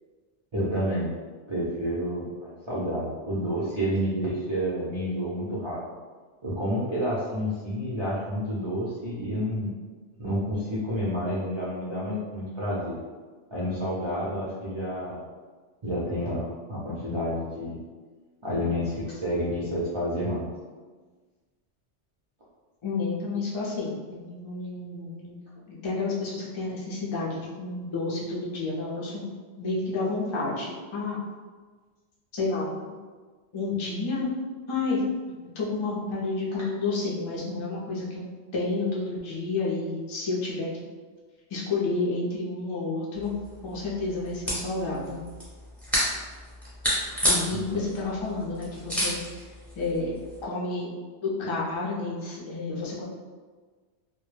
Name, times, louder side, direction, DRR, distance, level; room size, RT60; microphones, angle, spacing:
voice 1, 0.5-1.1 1.5-5.8 6.4-9.7 10.2-13.0 13.5-15.2 15.8-17.8 18.4-20.5 47.5-47.8, equal, 40° right, -9 dB, 0.4 m, -29 dB
voice 2, 22.8-25.4 25.7-29.3 29.6-31.2 32.3-33.0 33.5-34.3 34.7-35.0 35.6-38.2 38.5-40.8 41.5-43.3 43.6-45.2 47.2-49.5 49.8-50.1 50.4-50.9 51.2-53.0, left 3 dB, 40° left, -5 dB, 0.4 m, -30 dB
sound 1, 43.1-50.4, equal, ahead, 0.6 m, -31 dB
2.1 x 2.1 x 3.1 m, 1.4 s
omnidirectional pair, 1.2 m